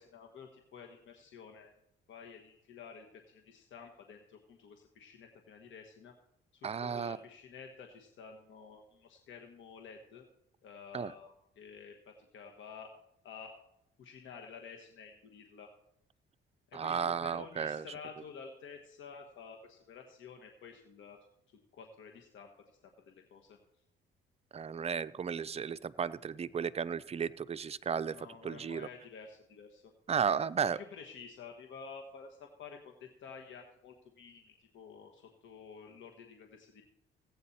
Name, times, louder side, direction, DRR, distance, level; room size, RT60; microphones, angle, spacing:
voice 1, 0.0-1.7 2.1-6.1 6.5-10.2 10.6-12.9 13.2-13.5 14.0-15.7 16.7-21.2 21.7-22.5 22.8-23.6 28.1-29.9 30.6-36.8, left 6 dB, 75° left, 3 dB, 1.4 m, -51 dB
voice 2, 6.6-7.2 10.9-11.1 16.7-17.9 24.5-28.1 28.4-28.9 30.1-30.8, right 7 dB, 30° right, 14 dB, 0.5 m, -34 dB
16.0 x 8.7 x 4.2 m, 0.78 s
cardioid pair, 90°, 20 cm